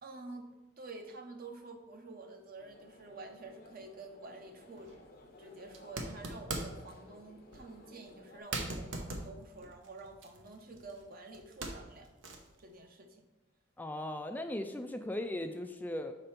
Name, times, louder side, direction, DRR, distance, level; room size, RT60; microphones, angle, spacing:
voice 1, 0.0-0.5 0.8-4.9 5.4-12.1 12.6-13.2, right 3 dB, 50° right, 4 dB, 0.8 m, -49 dB
sound 1, 2.6-8.4, left 1 dB, 50° left, 0.7 m, -56 dB
sound 2, 4.8-5.0 5.7-6.9 7.5-7.7 8.1-8.2 8.5-11.0 11.3-12.6, right 2 dB, 80° right, 0.9 m, -41 dB
voice 2, 13.8-16.1, left 1 dB, 10° left, 6 dB, 0.3 m, -38 dB
5.2 x 4.2 x 5.8 m, 1.0 s
head